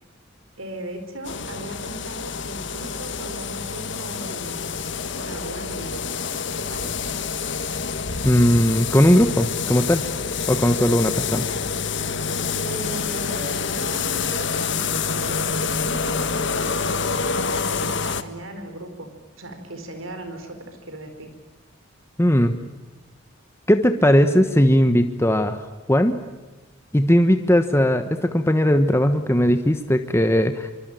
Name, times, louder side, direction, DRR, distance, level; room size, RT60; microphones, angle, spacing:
voice 1, 0.6-4.6 5.1-6.1 6.4-7.2 12.6-19.1 19.4-21.3, right 1 dB, 90° right, 7 dB, 4.3 m, -37 dB
sound 1, 1.3-18.2, left 5 dB, 60° left, 1.5 m, -27 dB
voice 2, 8.2-10.0 10.5-11.5 22.2-22.6 23.7-26.2 26.9-30.7, equal, 15° left, 8 dB, 1.2 m, -18 dB
25.0 x 24.5 x 9.2 m, 1.2 s
head